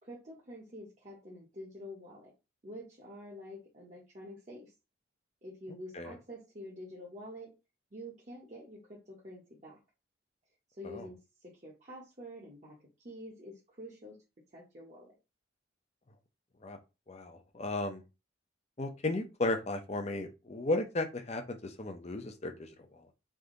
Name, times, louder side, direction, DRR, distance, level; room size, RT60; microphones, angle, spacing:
voice 1, 0.0-2.3 2.6-4.7 5.4-7.5 7.9-9.8 10.7-12.8 13.0-14.2 14.5-15.1, equal, 35° right, 1.0 m, -47 dB
voice 2, 17.1-18.0 18.8-23.1, left 2 dB, 35° left, 0.6 m, -35 dB
3.5 x 2.7 x 3.8 m
head